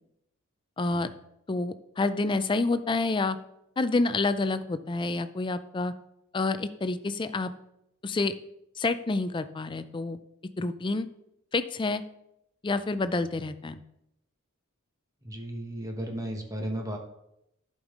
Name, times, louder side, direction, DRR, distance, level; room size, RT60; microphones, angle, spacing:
voice 1, 0.8-1.1 1.5-3.4 3.8-5.9 6.3-7.5 8.0-8.3 8.8-10.2 10.6-11.1 11.5-12.0 12.6-13.8, left 3 dB, 20° left, 12 dB, 0.4 m, -28 dB
voice 2, 15.2-17.0, right 1 dB, 15° right, 2 dB, 1.1 m, -34 dB
11.0 x 5.4 x 3.7 m, 0.81 s
head